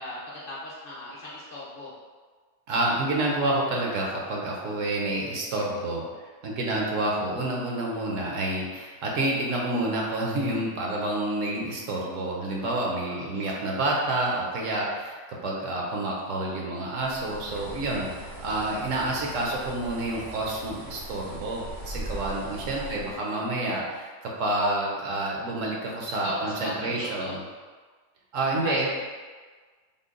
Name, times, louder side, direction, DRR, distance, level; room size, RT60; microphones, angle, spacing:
voice 1, 0.0-1.9 13.0-13.6 22.7-23.4 26.1-27.4 28.6-28.9, left 1 dB, 50° left, -6 dB, 0.8 m, -38 dB
voice 2, 2.7-6.1 6.4-27.4 28.3-28.9, right 2 dB, 75° right, -2 dB, 1.0 m, -28 dB
Bird, 17.0-23.2, right 1 dB, 55° right, 0.6 m, -40 dB
3.8 x 2.1 x 3.6 m, 1.5 s
omnidirectional pair, 1.4 m